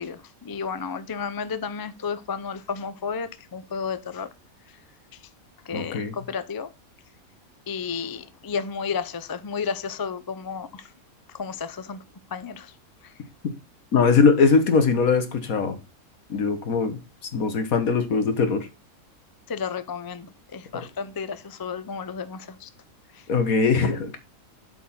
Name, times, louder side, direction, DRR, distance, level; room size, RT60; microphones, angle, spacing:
voice 1, 0.0-4.3 5.7-6.7 7.7-10.9 11.3-12.0 12.3-12.7 19.5-22.7 23.1-23.2, left 6 dB, 35° left, 0.3 m, -32 dB
voice 2, 5.7-6.1 13.9-15.8 16.3-17.0 17.3-18.7 23.3-24.2, left 5 dB, 75° left, 1.7 m, -21 dB
8.3 x 4.6 x 5.8 m
omnidirectional pair, 1.5 m